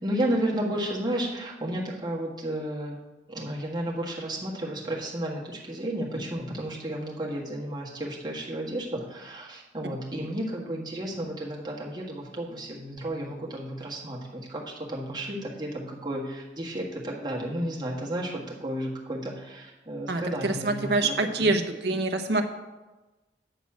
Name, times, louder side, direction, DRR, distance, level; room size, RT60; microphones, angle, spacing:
voice 1, 0.0-3.0 3.3-21.5, right 1 dB, 25° right, -3 dB, 1.5 m, -32 dB
voice 2, 20.1-22.4, right 2 dB, 70° right, 5 dB, 0.9 m, -26 dB
9.1 x 4.2 x 7.2 m, 1.1 s
head